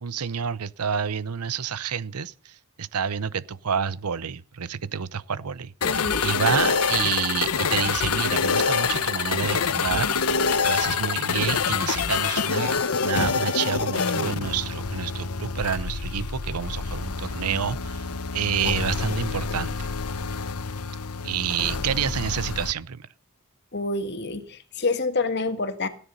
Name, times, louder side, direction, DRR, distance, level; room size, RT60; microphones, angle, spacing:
voice 1, 0.0-5.7 6.2-10.1 10.7-18.1 18.3-19.9 21.2-23.1, right 7 dB, 90° right, 0.8 m, -28 dB
sound 1, 5.8-22.7, left 5 dB, 85° left, 1.0 m, -26 dB
voice 2, 5.8-6.2 23.7-25.9, left 3 dB, 50° left, 1.6 m, -27 dB
17.0 x 10.0 x 5.4 m
head